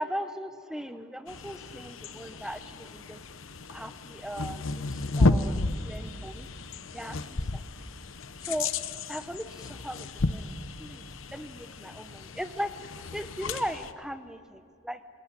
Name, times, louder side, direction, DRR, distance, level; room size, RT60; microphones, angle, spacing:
voice 1, 0.0-3.2 3.7-6.5 6.9-7.6 8.4-8.7 9.1-10.5 10.8-12.7 13.1-15.0, equal, 5° right, 10 dB, 0.8 m, -38 dB
sound 1, 1.3-13.9, left 2 dB, 85° left, 0.9 m, -33 dB
26.5 x 17.0 x 10.0 m, 2.3 s
head